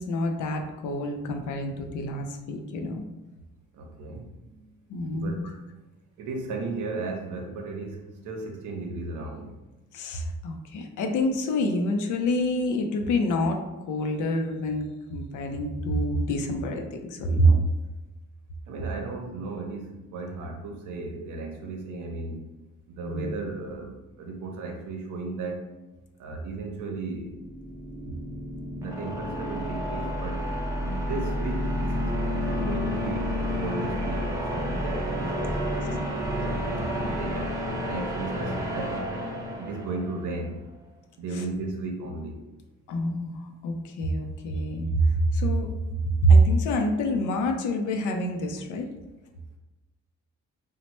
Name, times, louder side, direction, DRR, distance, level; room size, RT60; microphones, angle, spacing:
voice 1, 0.0-3.0 4.9-5.5 9.9-13.6 13.9-17.6 23.1-23.4 36.4-37.1 42.9-44.9 45.3-45.7 46.2-48.9, right 1 dB, 80° left, 4 dB, 0.5 m, -26 dB
voice 2, 3.7-4.6 5.1-5.5 6.2-9.5 18.7-22.4 22.9-25.6 26.2-27.3 28.7-30.4 30.8-36.0 36.9-39.0 39.6-40.5 41.2-42.4, right 3 dB, 80° right, 2 dB, 0.6 m, -35 dB
sound 1, 27.3-40.2, equal, 10° right, 0.5 m, -30 dB
3.1 x 2.1 x 2.9 m, 1.1 s
cardioid pair, 90°, 30 cm